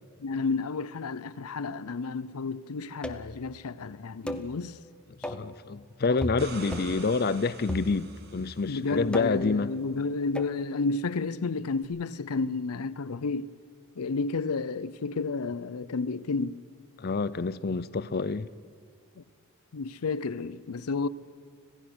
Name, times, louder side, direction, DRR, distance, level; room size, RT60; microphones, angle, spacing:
voice 1, 0.2-4.8 5.2-5.3 8.7-13.5 14.0-16.6 19.2-19.3 19.7-21.1, left 4 dB, 85° left, 0.6 m, -31 dB
sound 1, 3.0-3.4 4.3-4.5 5.2-5.5 6.2-6.4 6.7-7.0 7.7-8.3 9.1-9.5 10.3-10.6, equal, 5° left, 0.8 m, -36 dB
voice 2, 5.3-9.7 17.0-18.5, left 4 dB, 45° left, 0.5 m, -28 dB
sound 2, 6.2-9.0 11.8-11.9, right 3 dB, 45° right, 2.0 m, -45 dB
26.0 x 16.5 x 6.2 m
head